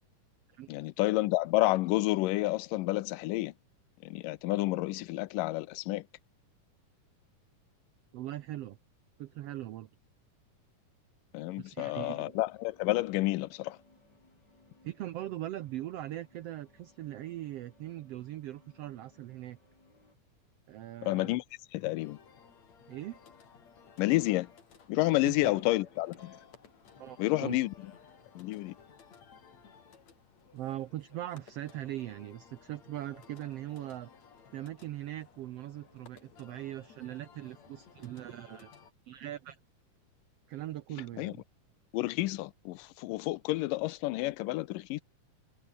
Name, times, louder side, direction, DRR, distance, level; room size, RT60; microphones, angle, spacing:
voice 1, 0.7-3.5 4.0-6.0 11.3-13.8 21.0-21.4 21.7-22.2 24.0-24.5 24.9-26.4 27.2-27.7 28.4-28.7 41.2-41.3 41.9-45.0, left 19 dB, 90° left, 2.3 m, -30 dB
voice 2, 8.1-8.8 9.2-9.9 11.6-12.4 14.8-19.6 20.7-21.4 22.9-23.2 25.1-25.6 27.0-27.6 30.5-34.1 34.5-38.7 39.0-39.6 40.5-41.4, right 14 dB, 90° right, 1.4 m, -40 dB
sound 1, 11.9-20.2, left 3 dB, 30° left, 6.0 m, -64 dB
sound 2, 22.0-38.9, left 6 dB, 55° left, 4.1 m, -58 dB
omnidirectional pair, 3.8 m